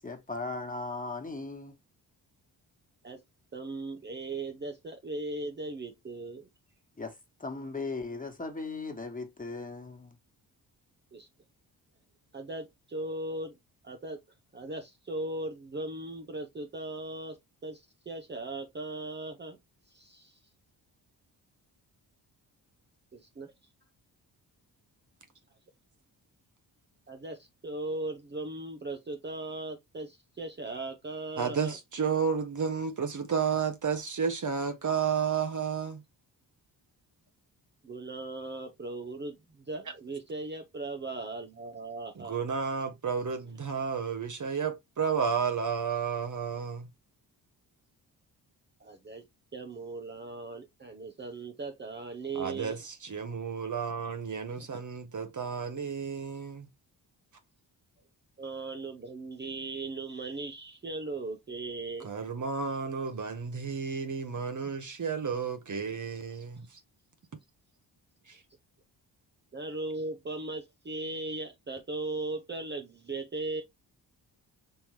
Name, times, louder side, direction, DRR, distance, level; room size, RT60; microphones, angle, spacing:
voice 1, 0.0-1.8 7.0-10.2, left 3 dB, 20° left, 1.6 m, -38 dB
voice 2, 3.5-6.5 11.1-11.3 12.3-13.6 13.8-14.2 14.5-19.6 19.9-20.4 23.1-23.5 27.1-31.8 37.8-42.4 48.8-49.2 49.5-52.8 54.6-54.7 58.4-62.1 66.6-66.7 69.5-73.6, right 2 dB, 25° right, 0.8 m, -38 dB
voice 3, 31.4-36.0 42.2-46.9 52.3-56.7 62.0-66.8 68.3-68.4, right 6 dB, 45° right, 1.0 m, -32 dB
5.6 x 2.9 x 3.1 m
supercardioid pair, 55°, 43 cm